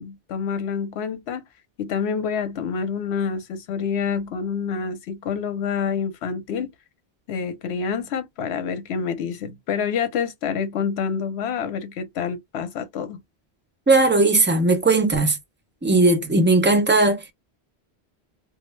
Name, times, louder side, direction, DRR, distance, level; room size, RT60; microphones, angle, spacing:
voice 1, 0.0-1.4 1.8-6.7 7.3-13.2 16.3-16.4, left 6 dB, 80° left, 0.9 m, -27 dB
voice 2, 13.9-15.4 15.8-17.3, right 2 dB, 15° right, 0.4 m, -18 dB
2.4 x 2.0 x 3.1 m
omnidirectional pair, 1.1 m